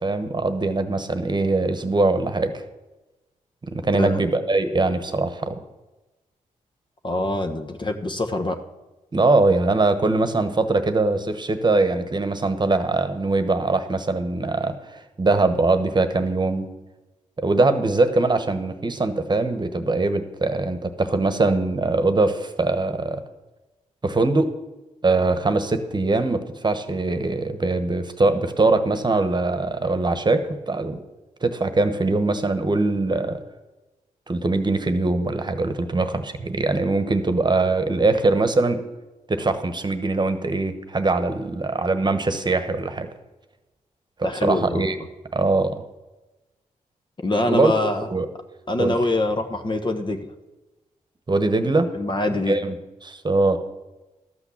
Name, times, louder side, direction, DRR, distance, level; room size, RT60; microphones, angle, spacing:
voice 1, 0.0-2.6 3.6-5.6 9.1-16.7 17.4-23.2 24.0-24.5 25.0-31.0 31.4-33.4 34.3-38.8 39.3-43.1 44.2-45.0 45.3-45.7 47.5-47.7 48.1-48.3 48.8-49.0 51.3-51.9 52.5-52.8 53.0-53.6, right 3 dB, 30° right, 9 dB, 1.2 m, -22 dB
voice 2, 7.0-8.6 44.2-44.9 47.2-48.1 48.7-50.3 51.9-52.6, left 2 dB, 35° left, 6 dB, 1.1 m, -24 dB
12.5 x 6.1 x 7.1 m, 1.1 s
cardioid pair, 55°, 14 cm